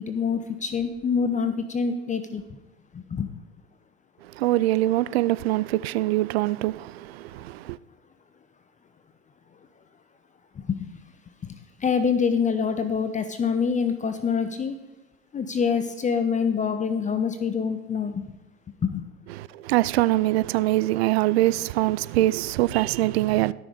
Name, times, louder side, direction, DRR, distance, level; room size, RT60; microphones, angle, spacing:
voice 1, 0.0-2.6 2.9-3.3 10.5-10.9 11.4-14.8 15.3-18.3 18.8-19.0, left 6 dB, 25° left, 0.9 m, -26 dB
voice 2, 4.2-7.8 19.4-23.5, right 16 dB, 75° right, 0.5 m, -23 dB
13.5 x 6.3 x 5.2 m
hypercardioid pair, 85°, 31 cm